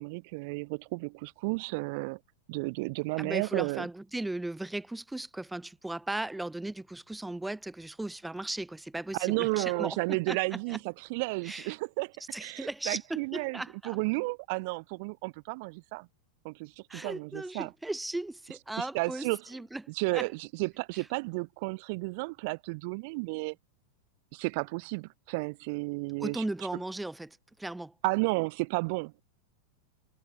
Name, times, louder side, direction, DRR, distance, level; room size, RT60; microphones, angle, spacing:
voice 1, 0.0-2.2 2.5-3.9 9.2-12.1 12.4-16.1 16.4-17.7 18.8-19.4 19.9-23.5 24.3-26.4 28.0-29.2, right 29 dB, 45° right, 3.3 m, -32 dB
voice 2, 3.2-10.8 11.4-11.7 12.3-14.0 16.9-19.8 20.1-20.3 26.2-27.9, right 2 dB, 5° right, 3.6 m, -37 dB
figure-of-eight pair, 90°, 0 cm